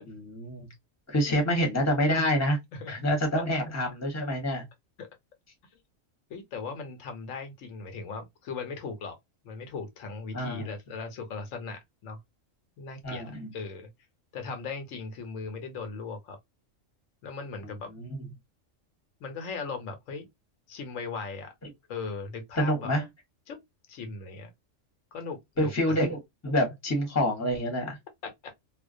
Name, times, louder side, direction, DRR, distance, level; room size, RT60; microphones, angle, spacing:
voice 1, 0.1-0.7 1.1-2.6 2.9-4.6 10.3-10.7 13.0-13.5 18.0-18.1 22.6-23.0 25.6-28.0, equal, 15° left, 0.8 m, -27 dB
voice 2, 6.3-9.2 9.4-12.2 12.8-13.9 14.3-16.4 17.2-17.9 19.2-20.3 20.7-21.5 21.9-22.9 23.5-23.6 23.9-24.5 25.1-26.0 28.2-28.3, left 4 dB, 85° left, 1.1 m, -38 dB
2.4 x 2.1 x 2.4 m
omnidirectional pair, 1.3 m